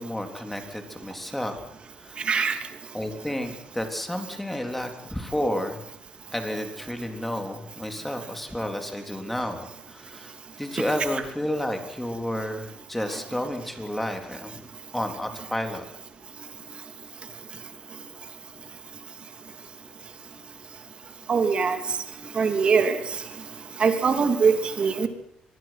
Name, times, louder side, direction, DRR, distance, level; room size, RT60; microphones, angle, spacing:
voice 1, 0.0-1.6 2.0-2.2 2.9-5.8 6.3-15.8, left 1 dB, 5° left, 5 dB, 3.6 m, -31 dB
voice 2, 2.3-2.6 21.3-21.8 22.3-23.0 23.8-25.1, right 5 dB, 40° right, 7 dB, 2.9 m, -22 dB
26.0 x 21.5 x 6.0 m, 0.79 s
cardioid pair, 125°, 3 cm